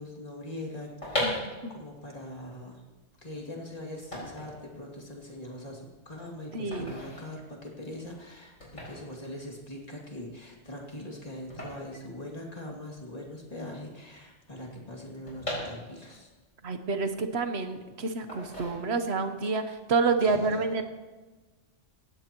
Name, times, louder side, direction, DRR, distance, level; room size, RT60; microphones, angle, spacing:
voice 1, 0.0-1.4 1.7-2.9 3.2-16.3 20.2-20.6, left 1 dB, 30° left, -2 dB, 2.7 m, -42 dB
sound 1, 0.9-12.9 13.2-13.3 13.4-16.3 16.7-17.7 18.3-19.3 19.6-19.9, left 1 dB, 90° left, 5.6 m, -39 dB
voice 2, 1.2-1.5 6.5-7.0 16.6-20.8, right 4 dB, 60° right, 7 dB, 1.3 m, -28 dB
18.0 x 15.5 x 3.0 m, 1.3 s
omnidirectional pair, 1.3 m